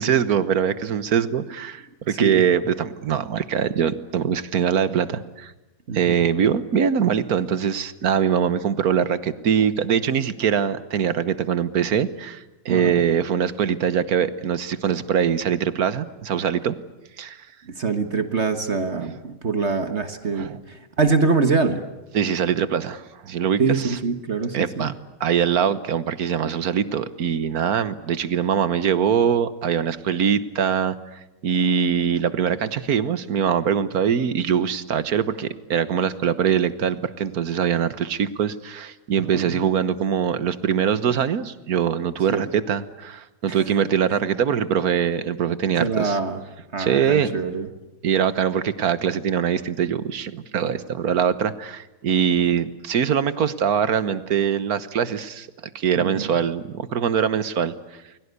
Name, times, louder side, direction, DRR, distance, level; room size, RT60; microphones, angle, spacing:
voice 1, 0.0-5.5 5.9-16.8 17.2-17.4 20.3-20.6 22.1-24.0 24.5-24.9 25.2-31.0 31.4-46.2 46.8-47.3 48.0-55.5 55.7-57.7, right 8 dB, 90° right, 14 dB, 1.6 m, -23 dB
voice 2, 2.1-2.4 5.9-6.2 12.7-13.0 17.7-21.8 23.6-24.9 39.3-39.6 42.3-42.5 43.5-43.6 45.8-46.4 46.7-47.7 56.0-56.3, right 4 dB, 50° right, 8 dB, 1.7 m, -24 dB
29.5 x 22.0 x 8.3 m, 0.99 s
omnidirectional pair, 1.5 m